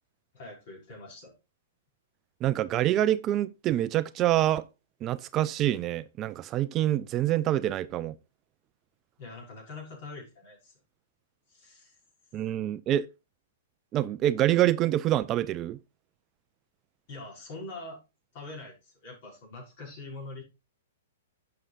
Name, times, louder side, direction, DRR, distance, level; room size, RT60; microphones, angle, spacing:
voice 1, 0.3-1.3 9.2-10.7 11.5-11.9 17.1-18.0 18.3-20.4, left 2 dB, 50° left, 5.4 m, -43 dB
voice 2, 2.4-4.6 5.0-8.1 12.3-13.1 13.9-15.8, right 13 dB, 30° right, 0.4 m, -26 dB
11.0 x 6.7 x 2.5 m
figure-of-eight pair, 115°, 0 cm